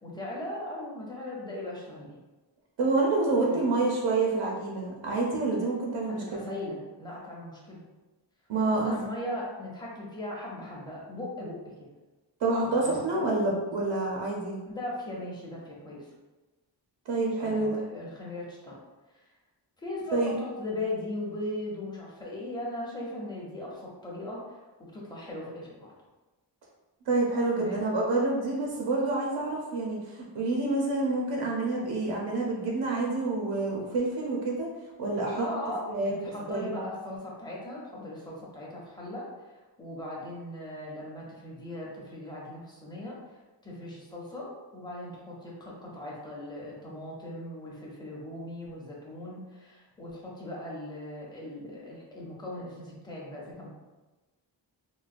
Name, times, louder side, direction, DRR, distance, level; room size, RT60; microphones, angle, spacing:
voice 1, 0.0-2.2 3.5-3.7 6.1-7.8 8.7-11.6 12.6-13.2 14.7-16.1 17.4-18.7 19.8-25.9 27.5-27.9 35.3-35.8 36.1-39.2 39.8-43.2 43.6-44.5 44.7-53.7, left 1 dB, 10° left, -5 dB, 0.6 m, -38 dB
voice 2, 2.8-6.2 8.5-8.9 12.4-14.6 17.1-17.8 20.1-20.3 27.1-34.7 35.0-35.4 35.9-36.1 36.5-36.9, right 3 dB, 90° right, -2 dB, 0.7 m, -28 dB
3.8 x 2.2 x 2.5 m, 1.2 s
wide cardioid pair, 160°, 43 cm